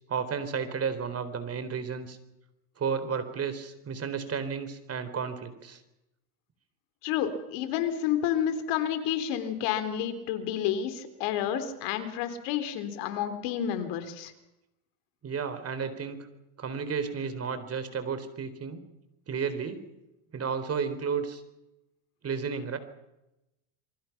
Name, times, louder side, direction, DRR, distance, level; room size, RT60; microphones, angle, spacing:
voice 1, 0.0-2.2 2.8-5.8 15.2-16.3 16.6-18.8 19.3-19.8 20.3-21.4 22.2-22.8, right 6 dB, 35° right, 11 dB, 4.0 m, -32 dB
voice 2, 7.0-14.3, left 9 dB, 70° left, 9 dB, 3.7 m, -30 dB
27.5 x 23.5 x 6.0 m, 0.92 s
supercardioid pair, 105°, 44 cm